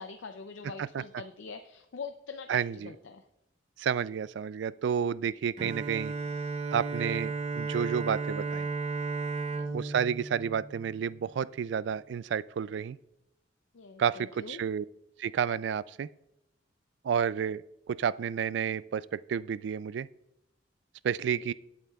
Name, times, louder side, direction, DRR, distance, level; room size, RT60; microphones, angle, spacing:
voice 1, 0.0-3.2 9.5-9.7 13.7-14.6 21.4-21.5, left 5 dB, 90° left, 7 dB, 0.5 m, -44 dB
voice 2, 2.5-2.9 3.8-6.1 6.7-8.7 9.7-13.0 14.0-14.9 15.2-16.1 17.0-20.1 21.0-21.5, right 7 dB, 65° right, 19 dB, 0.3 m, -31 dB
Bowed string instrument, 5.6-11.5, right 4 dB, 35° right, 0.7 m, -34 dB
18.5 x 8.6 x 2.3 m, 0.85 s
head